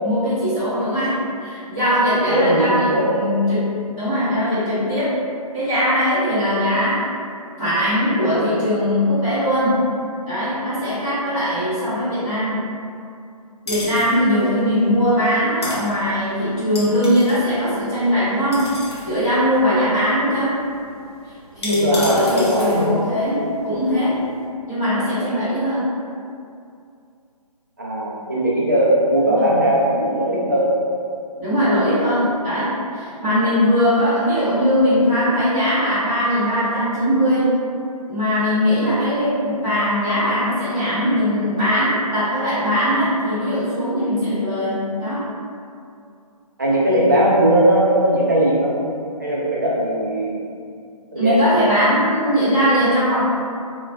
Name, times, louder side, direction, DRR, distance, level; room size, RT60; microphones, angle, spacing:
voice 1, 0.0-5.1 5.5-7.0 7.6-9.8 10.2-12.6 13.6-18.6 19.0-20.6 21.5-24.2 24.7-25.9 29.2-29.4 31.4-37.5 38.1-45.2 51.1-53.2, equal, 10° right, -19 dB, 0.9 m, -20 dB
voice 2, 2.3-3.1 14.3-14.6 21.7-23.0 27.8-30.7 31.8-32.1 46.6-48.7 49.2-50.4 51.1-51.4, right 1 dB, 30° right, -6 dB, 0.3 m, -19 dB
sound 1, 13.7-24.4, left 1 dB, 40° left, 0.6 m, -36 dB
2.4 x 2.2 x 3.2 m, 2.4 s
hypercardioid pair, 175°, 20 cm